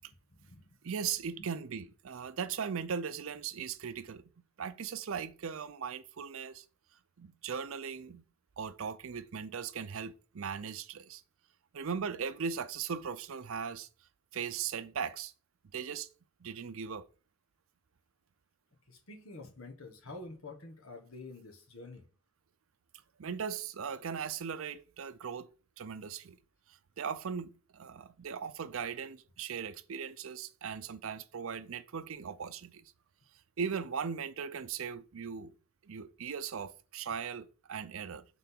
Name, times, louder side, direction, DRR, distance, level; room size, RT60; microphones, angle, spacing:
voice 1, 0.0-1.5 4.0-4.1 18.9-22.1 35.9-36.0, left 2 dB, 80° left, 1.6 m, -49 dB
voice 2, 0.8-4.3 4.6-6.6 7.2-8.2 8.6-11.2 11.7-13.9 14.3-15.3 15.7-16.1 16.4-17.1 23.2-25.5 25.8-26.4 27.0-32.9 33.6-35.5 35.8-38.3, right 6 dB, 70° right, 0.5 m, -38 dB
5.9 x 3.8 x 6.0 m
head